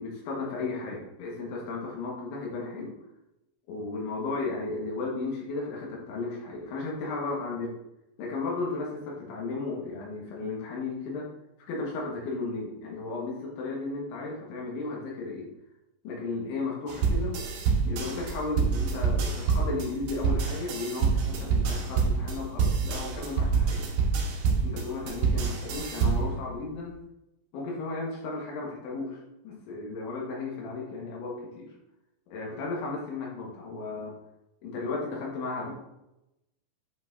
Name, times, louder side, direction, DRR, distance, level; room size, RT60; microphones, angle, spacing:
voice 1, 0.0-2.9 3.7-7.7 8.2-11.3 11.7-15.5 16.1-17.4 17.8-23.8 24.6-27.0 27.5-31.7 32.3-34.1 34.6-35.7, left 3 dB, 80° left, -3 dB, 3.8 m, -34 dB
sound 1, 16.9-26.4, right 5 dB, 75° right, 1.9 m, -26 dB
9.0 x 5.5 x 2.6 m, 0.89 s
omnidirectional pair, 5.4 m